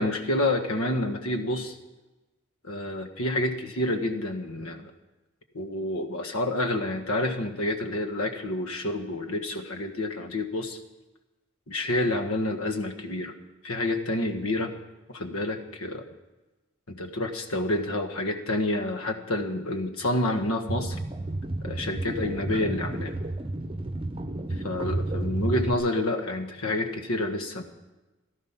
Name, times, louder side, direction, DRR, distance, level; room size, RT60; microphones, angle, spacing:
voice 1, 0.0-1.8 2.6-4.9 5.5-10.8 11.7-13.3 13.6-14.7 15.1-16.0 16.9-21.0 21.6-23.1 24.5-27.6, left 1 dB, 80° left, 6 dB, 1.6 m, -28 dB
sound 1, 20.7-25.7, right 1 dB, 25° right, 0.8 m, -31 dB
16.5 x 13.0 x 5.9 m, 1.1 s
head